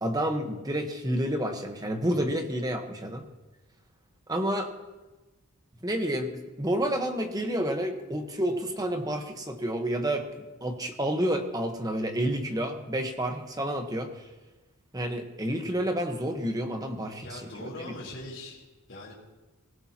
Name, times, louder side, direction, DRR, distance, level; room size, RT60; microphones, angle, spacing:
voice 1, 0.0-3.2 4.3-4.7 5.8-10.2 10.6-14.1 14.9-17.9, right 1 dB, 15° right, 5 dB, 1.2 m, -29 dB
voice 2, 17.2-19.1, left 1 dB, 55° left, -5 dB, 3.6 m, -41 dB
23.5 x 16.0 x 2.9 m, 1.2 s
head